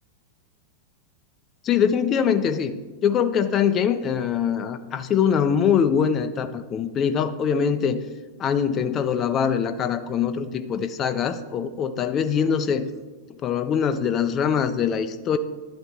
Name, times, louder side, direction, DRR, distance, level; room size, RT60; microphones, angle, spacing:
voice 1, 1.6-2.7 3.0-8.0 8.4-12.9 13.4-15.4, left 7 dB, 30° left, 9 dB, 0.4 m, -23 dB
11.5 x 4.0 x 3.3 m, 1.3 s
figure-of-eight pair, 90°, 0 cm